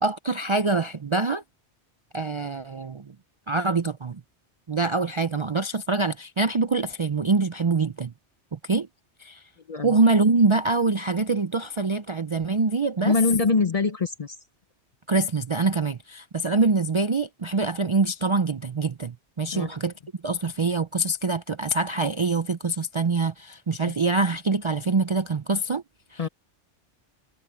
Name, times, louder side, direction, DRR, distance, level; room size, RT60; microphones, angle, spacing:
voice 1, 0.0-1.4 2.1-3.1 3.5-4.2 4.7-8.1 8.5-8.9 9.2-9.4 9.8-13.1 15.1-19.9 20.2-25.8 26.1-26.2, right 3 dB, 40° right, 0.4 m, -24 dB
voice 2, 13.0-14.4 19.5-19.8 26.2-26.3, left 4 dB, 40° left, 0.6 m, -23 dB
omnidirectional pair, 1.2 m